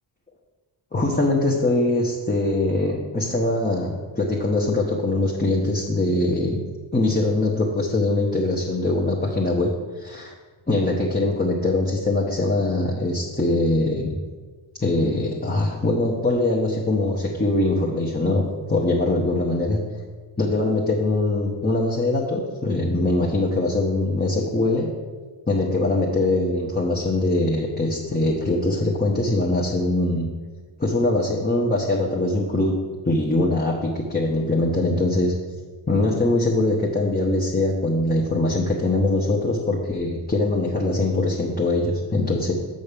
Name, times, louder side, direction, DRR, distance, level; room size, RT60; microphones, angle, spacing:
voice 1, 0.9-6.6 6.9-10.3 10.7-14.1 14.8-19.8 20.4-24.9 25.5-30.3 30.8-32.8 33.0-35.3 35.9-42.5, left 2 dB, 20° left, -3 dB, 1.1 m, -22 dB
7.0 x 5.3 x 6.8 m, 1.4 s
wide cardioid pair, 80°, 49 cm